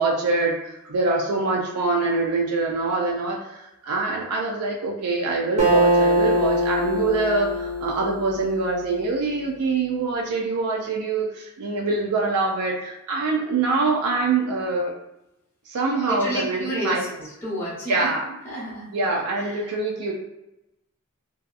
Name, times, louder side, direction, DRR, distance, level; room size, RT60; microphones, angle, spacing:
voice 1, 0.0-14.9 15.7-17.0 17.9-18.2 18.9-20.1, right 3 dB, 90° right, -1 dB, 0.4 m, -24 dB
Acoustic guitar, 5.6-9.2, right 1 dB, 30° right, 0.6 m, -23 dB
voice 2, 16.1-18.1 18.4-18.9 19.3-19.8, equal, 10° left, -8 dB, 0.7 m, -31 dB
2.7 x 2.3 x 2.4 m, 0.91 s
head